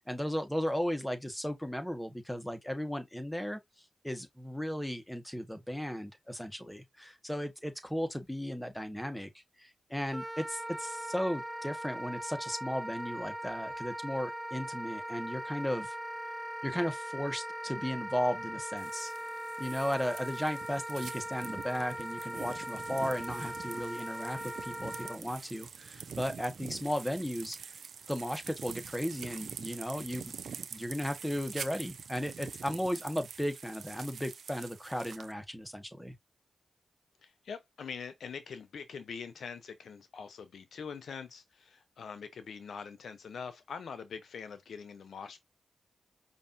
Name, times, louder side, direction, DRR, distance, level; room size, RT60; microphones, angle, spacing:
voice 1, 0.0-3.6 4.0-9.3 9.6-15.9 16.6-19.1 19.6-27.6 28.1-30.3 30.7-36.1, equal, 5° left, 1.4 m, -35 dB
Wind instrument woodwind instrument, 10.1-25.2, right 1 dB, 10° right, 0.6 m, -40 dB
sound 1, 18.8-35.3, right 6 dB, 75° right, 0.5 m, -46 dB
voice 2, 37.2-45.4, left 6 dB, 80° left, 0.7 m, -44 dB
5.3 x 2.7 x 2.6 m
cardioid pair, 45°, 0 cm